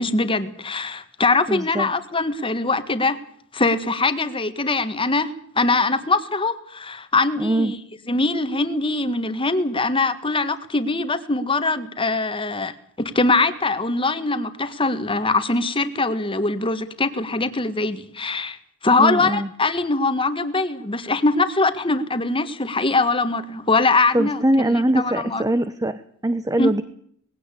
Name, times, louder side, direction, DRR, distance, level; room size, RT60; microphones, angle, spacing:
voice 1, 0.0-3.2 3.5-7.8 8.1-18.6 18.8-25.4 26.6-26.7, left 3 dB, 25° left, 11 dB, 1.7 m, -22 dB
voice 2, 1.5-1.9 7.4-7.7 19.0-19.5 24.1-26.8, right 1 dB, 15° right, 11 dB, 0.9 m, -22 dB
20.5 x 16.5 x 8.6 m, 0.65 s
head